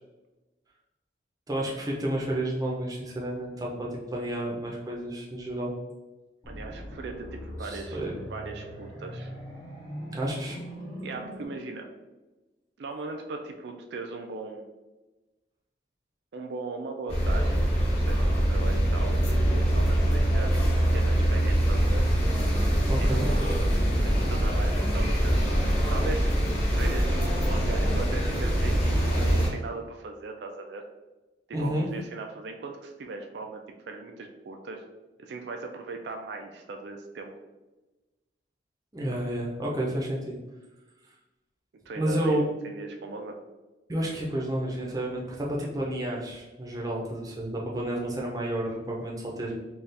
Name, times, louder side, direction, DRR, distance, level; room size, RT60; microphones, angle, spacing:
voice 1, 1.5-5.7 7.6-8.2 10.1-10.6 22.8-23.3 31.5-31.9 38.9-40.4 42.0-42.4 43.9-49.5, right 1 dB, 20° right, -3 dB, 0.6 m, -30 dB
sound 1, 6.4-11.4, equal, 20° left, 0.8 m, -40 dB
voice 2, 6.5-8.0 8.3-9.3 11.0-11.9 12.8-14.7 16.3-19.2 19.5-22.0 23.0-23.6 24.0-26.4 26.7-30.8 31.5-34.8 35.2-37.3 41.9-43.4, right 3 dB, 70° right, 4 dB, 0.4 m, -38 dB
sound 2, 17.1-29.5, equal, 35° left, 1.1 m, -24 dB
4.0 x 2.3 x 3.3 m, 1.1 s
head